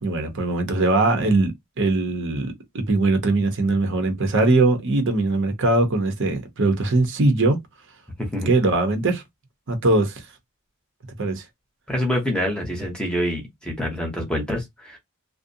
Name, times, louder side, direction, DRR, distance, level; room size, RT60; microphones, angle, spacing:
voice 1, 0.0-7.6 8.5-9.2 9.7-10.2 11.2-11.4, right 2 dB, 55° right, 0.8 m, -21 dB
voice 2, 8.2-8.5 11.9-15.0, equal, 5° left, 0.7 m, -26 dB
2.4 x 2.1 x 2.6 m
head